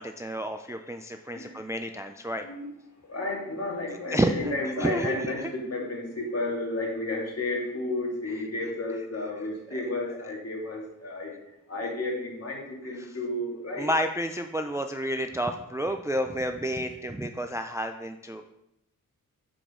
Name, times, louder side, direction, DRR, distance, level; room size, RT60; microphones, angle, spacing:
voice 1, 0.0-2.5 4.1-5.5 13.8-18.4, right 1 dB, 10° right, 6 dB, 0.3 m, -30 dB
voice 2, 3.0-11.3 11.7-13.9, left 2 dB, 45° left, -2 dB, 2.3 m, -32 dB
8.7 x 5.0 x 3.7 m, 0.85 s
wide cardioid pair, 95°, 34 cm